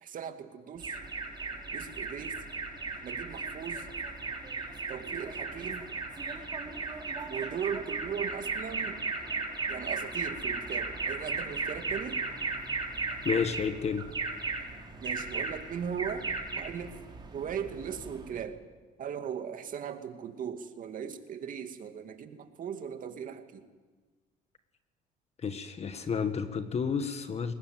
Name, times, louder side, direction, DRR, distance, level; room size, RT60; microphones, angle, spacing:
voice 1, 0.0-1.0 1.7-2.4 3.0-3.9 4.9-5.9 7.3-9.0 9.7-12.2 15.0-17.0 17.3-18.6 19.0-23.7, right 7 dB, 55° right, 6 dB, 2.4 m, -38 dB
Alarm, 0.8-18.4, right 4 dB, 25° right, 4.9 m, -36 dB
voice 2, 13.3-14.0 25.4-27.5, left 6 dB, 40° left, 9 dB, 1.7 m, -31 dB
22.0 x 20.0 x 9.2 m, 1.3 s
cardioid pair, 110°, 17 cm